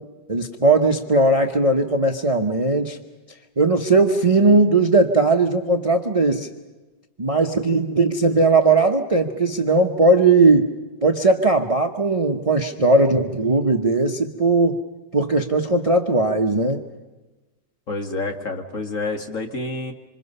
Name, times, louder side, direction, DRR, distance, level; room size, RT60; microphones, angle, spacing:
voice 1, 0.3-3.0 3.6-6.5 7.2-10.7 11.0-14.8 15.1-16.8, right 3 dB, 25° right, 4 dB, 0.8 m, -18 dB
voice 2, 17.9-19.9, left 2 dB, 45° left, 3 dB, 2.1 m, -28 dB
27.0 x 26.0 x 5.5 m, 1.2 s
omnidirectional pair, 2.0 m